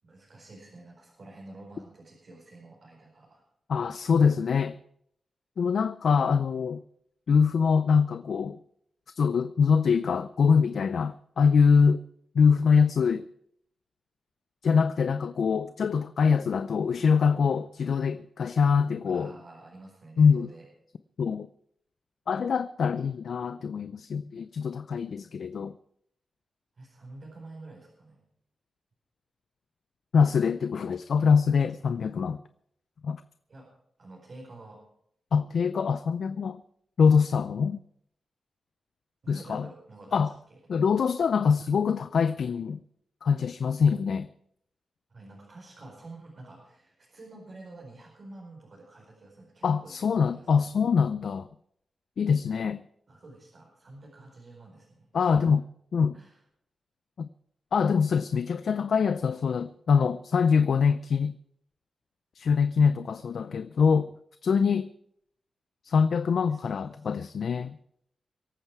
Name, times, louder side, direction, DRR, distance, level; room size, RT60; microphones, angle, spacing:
voice 1, 0.0-3.4 19.1-20.7 26.8-28.2 33.5-33.7 34.0-34.8 39.2-40.6 45.1-50.6 53.1-55.5 56.1-56.4 65.9-67.1, right 2 dB, 55° right, 4.8 m, -49 dB
voice 2, 3.7-4.8 5.6-6.8 7.3-8.6 9.2-12.0 12.3-13.3 14.6-19.3 20.2-20.5 21.2-21.5 22.3-25.7 30.1-32.4 33.0-33.2 35.3-36.6 37.0-37.8 39.3-39.7 40.1-40.3 40.7-42.8 43.2-44.3 49.6-51.5 52.2-52.8 55.1-55.7 55.9-56.2 57.2-57.3 57.7-61.4 62.3-64.1 64.4-64.9 65.8-67.8, left 6 dB, 75° left, 0.5 m, -24 dB
23.5 x 8.9 x 4.7 m
cardioid pair, 80°, 0 cm